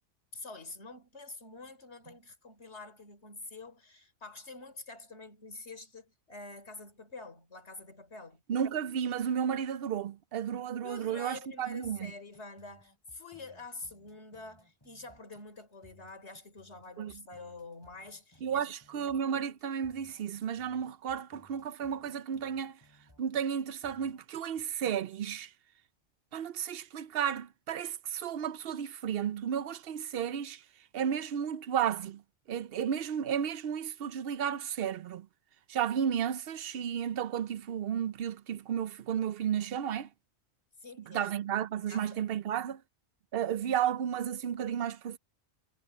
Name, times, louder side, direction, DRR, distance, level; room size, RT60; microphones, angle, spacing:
voice 1, 0.3-8.4 10.8-19.1 40.8-41.3 41.9-42.3, left 3 dB, 75° left, 3.9 m, -47 dB
voice 2, 8.5-12.1 17.0-17.2 18.4-22.8 23.2-25.5 26.3-30.6 30.9-32.2 32.5-35.3 35.7-40.1 41.1-42.8 43.3-45.2, right 8 dB, 65° right, 0.8 m, -33 dB
sound 1, 11.3-24.6, left 1 dB, 20° left, 3.2 m, -63 dB
omnidirectional pair, 1.1 m